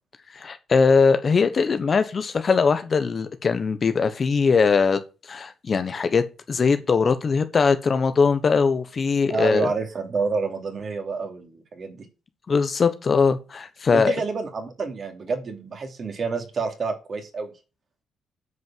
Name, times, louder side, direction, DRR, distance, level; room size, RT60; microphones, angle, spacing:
voice 1, 0.3-9.7 12.5-14.1, left 5 dB, 40° left, 1.1 m, -21 dB
voice 2, 9.3-12.1 13.9-17.5, right 4 dB, 45° right, 2.9 m, -28 dB
9.6 x 5.3 x 7.4 m
cardioid pair, 90°, 0 cm